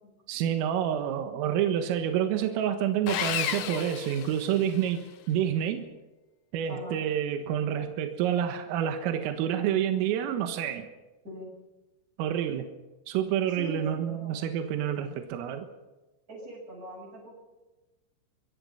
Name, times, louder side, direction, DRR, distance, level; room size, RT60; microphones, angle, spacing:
voice 1, 0.3-5.9 6.5-10.9 12.2-12.7 13.1-15.7, right 9 dB, 80° right, 6 dB, 4.1 m, -28 dB
Sawing, 3.1-5.0, left 9 dB, 65° left, 2.7 m, -32 dB
voice 2, 6.7-7.0 11.2-11.5 13.6-14.4 16.3-17.3, left 1 dB, 15° right, -6 dB, 7.6 m, -42 dB
25.0 x 21.5 x 5.8 m, 1.1 s
omnidirectional pair, 5.9 m